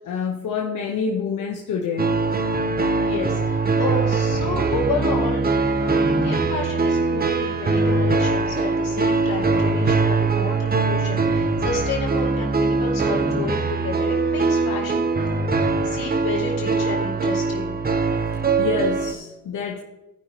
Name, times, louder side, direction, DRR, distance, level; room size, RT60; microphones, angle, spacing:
voice 1, 0.0-2.1 18.6-19.8, left 5 dB, 65° left, 0 dB, 1.3 m, -27 dB
sound 1, 2.0-19.1, right 3 dB, 30° right, 1.1 m, -22 dB
voice 2, 3.0-15.3 15.6-17.8, left 3 dB, 85° left, -1 dB, 2.8 m, -31 dB
16.0 x 5.7 x 3.1 m, 1.0 s
supercardioid pair, 60°, 32 cm